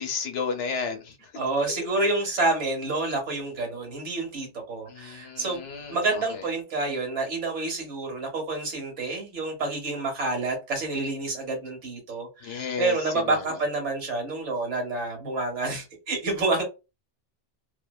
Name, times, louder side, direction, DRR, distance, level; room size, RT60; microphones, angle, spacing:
voice 1, 0.0-1.2 4.9-6.4 12.4-13.0 13.3-13.4, left 5 dB, 80° left, 1.0 m, -32 dB
voice 2, 1.3-5.6 5.9-16.6, right 2 dB, 85° right, 1.3 m, -28 dB
2.6 x 2.1 x 2.2 m
omnidirectional pair, 1.2 m